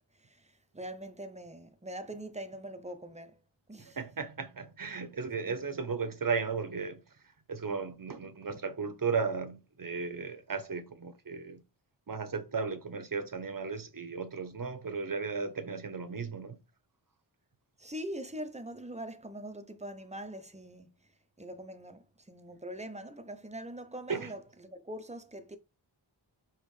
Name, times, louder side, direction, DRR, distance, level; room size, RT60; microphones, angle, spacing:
voice 1, 0.2-3.4 3.7-4.0 5.5-5.6 17.8-21.1 21.4-25.6, right 1 dB, 15° right, 0.7 m, -43 dB
voice 2, 3.8-7.0 7.5-11.6 12.1-16.6 24.1-24.3, right 5 dB, 45° right, 0.9 m, -35 dB
5.3 x 3.1 x 3.2 m
wide cardioid pair, 55°, 47 cm